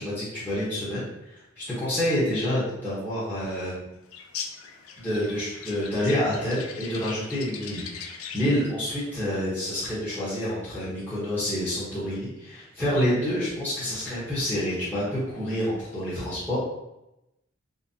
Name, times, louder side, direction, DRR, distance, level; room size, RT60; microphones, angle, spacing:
voice 1, 0.0-3.8 5.0-16.6, equal, 10° left, -12 dB, 0.9 m, -28 dB
Birds sounds, 4.1-8.6, left 6 dB, 80° left, 0.4 m, -40 dB
3.9 x 2.1 x 2.6 m, 0.91 s
head